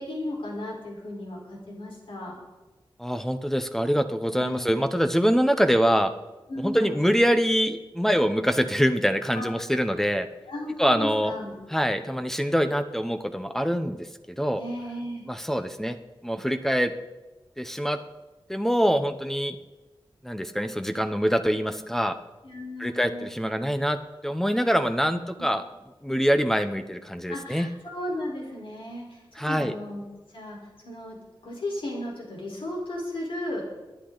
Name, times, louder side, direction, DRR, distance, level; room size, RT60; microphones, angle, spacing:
voice 1, 0.0-2.4 4.4-4.6 6.5-7.0 9.3-9.5 10.5-11.5 14.5-15.2 22.4-23.3 27.3-30.6 30.8-31.2 31.4-33.6, left 1 dB, 85° left, -1 dB, 4.4 m, -35 dB
voice 2, 3.0-6.1 6.6-10.3 10.8-11.3 11.7-14.6 15.3-16.0 16.2-16.9 17.6-18.0 18.5-19.6 20.2-22.2 22.8-25.6 26.0-27.7 29.4-29.7, equal, 5° left, 9 dB, 0.8 m, -24 dB
23.5 x 10.5 x 4.0 m, 1.1 s
wide cardioid pair, 110°, 9 cm